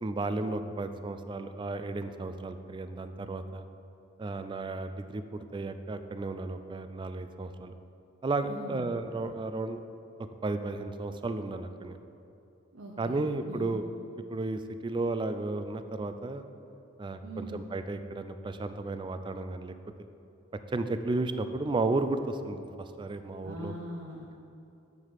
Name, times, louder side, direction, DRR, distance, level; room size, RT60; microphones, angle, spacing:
voice 1, 0.0-3.6 4.2-7.7 8.2-9.8 10.4-12.0 13.0-13.9 14.3-16.4 17.0-19.7 20.7-23.7, right 2 dB, 25° right, 10 dB, 0.3 m, -33 dB
voice 2, 8.4-8.8 12.7-13.8 17.2-17.6 23.4-24.4, right 1 dB, 80° right, -2 dB, 0.8 m, -42 dB
7.5 x 6.5 x 4.7 m, 2.7 s
head